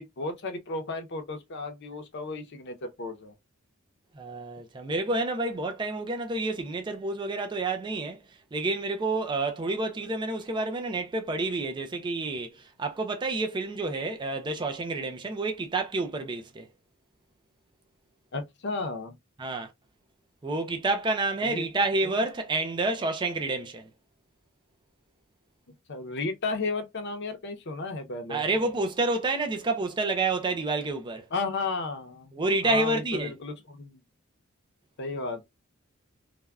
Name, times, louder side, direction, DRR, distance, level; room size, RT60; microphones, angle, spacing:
voice 1, 0.0-3.3 18.3-19.2 21.4-22.2 25.9-28.5 31.3-32.4 32.6-34.0 35.0-35.4, left 3 dB, 55° left, 0.7 m, -34 dB
voice 2, 4.2-8.2 8.5-16.7 19.4-19.7 20.4-23.9 28.3-31.2 32.3-33.3, right 2 dB, 20° right, 0.4 m, -29 dB
3.3 x 2.2 x 2.3 m
head